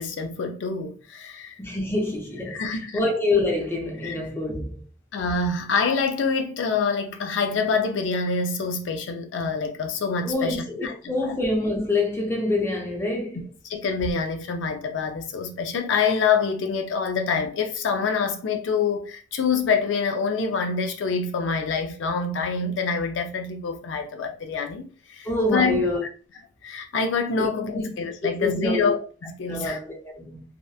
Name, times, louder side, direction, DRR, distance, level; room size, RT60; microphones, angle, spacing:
voice 1, 0.0-1.6 2.5-3.0 4.0-4.2 5.1-10.9 11.2-11.4 13.7-25.8 26.6-29.0 29.4-29.8, left 5 dB, 75° left, 0.4 m, -26 dB
voice 2, 1.6-4.8 10.2-13.4 25.2-26.0 27.4-27.8 28.4-28.9 29.5-30.4, left 2 dB, 15° left, 0.6 m, -26 dB
2.8 x 2.1 x 2.3 m
head